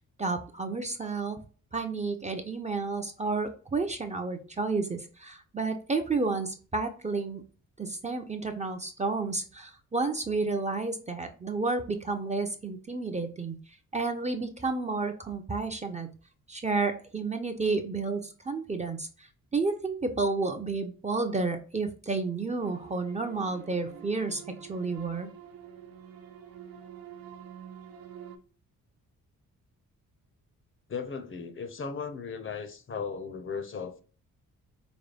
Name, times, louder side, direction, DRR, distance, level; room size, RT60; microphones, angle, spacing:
voice 1, 0.2-1.4 1.7-7.4 7.8-13.6 13.9-16.1 16.5-24.4 24.7-25.3, right 3 dB, 20° right, 0.5 m, -31 dB
sound 1, 22.6-28.4, right 8 dB, 80° right, 0.7 m, -47 dB
voice 2, 30.9-34.0, left 5 dB, 40° left, 0.6 m, -36 dB
5.0 x 2.2 x 3.3 m
cardioid pair, 115°, 34 cm